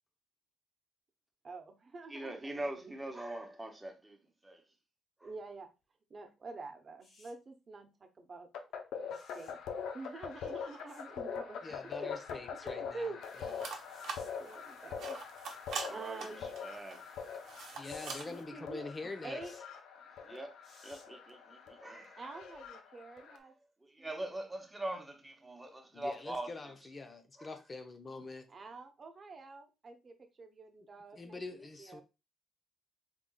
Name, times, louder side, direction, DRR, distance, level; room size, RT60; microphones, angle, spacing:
voice 1, 1.4-2.9 5.2-5.7 6.1-8.5 9.0-9.6 9.9-11.6 11.9-12.1 12.6-13.2 14.4-15.2 15.6-16.5 18.3-18.9 19.2-19.6 22.2-23.5 24.0-24.1 28.5-32.0, right 3 dB, 40° right, 0.8 m, -47 dB
voice 2, 2.1-4.6 5.2-5.3 15.8-17.4 17.7-17.8 20.2-20.5 20.8-22.2 23.4-23.5 23.8-26.7 27.4-27.6, right 1 dB, 15° right, 1.0 m, -43 dB
sound 1, 7.0-7.3 9.1-9.5 10.9-11.0 13.9-14.3 17.8-18.3 19.4-19.6 20.6-21.0 22.5-22.7, left 2 dB, 60° left, 1.7 m, -57 dB
sound 2, 8.5-23.4, left 6 dB, 80° left, 0.6 m, -44 dB
voice 3, 11.6-13.7 17.8-19.4 25.9-28.5 31.1-32.0, left 3 dB, 30° left, 0.6 m, -45 dB
sound 3, 13.2-18.4, right 5 dB, 70° right, 0.8 m, -45 dB
3.8 x 3.6 x 2.3 m
cardioid pair, 90°, 0 cm